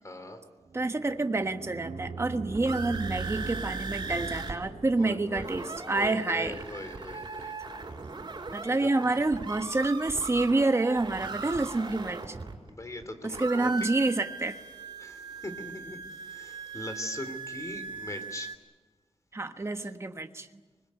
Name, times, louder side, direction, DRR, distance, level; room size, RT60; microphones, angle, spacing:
voice 1, 0.0-0.4 5.0-7.6 8.7-8.9 12.7-13.7 15.0-16.0 16.3-18.5, left 1 dB, 30° left, 8 dB, 3.1 m, -40 dB
sound 1, 0.6-5.6, right 4 dB, 75° right, 3.4 m, -40 dB
voice 2, 0.7-6.6 8.5-12.3 13.2-14.6 19.3-20.5, right 2 dB, 25° right, 8 dB, 1.2 m, -28 dB
sound 2, 2.5-4.5 4.8-4.9 5.2-13.0 13.3-18.6, right 4 dB, 45° right, 4.2 m, -39 dB
24.5 x 21.5 x 9.5 m, 1.2 s
wide cardioid pair, 120°, 11 cm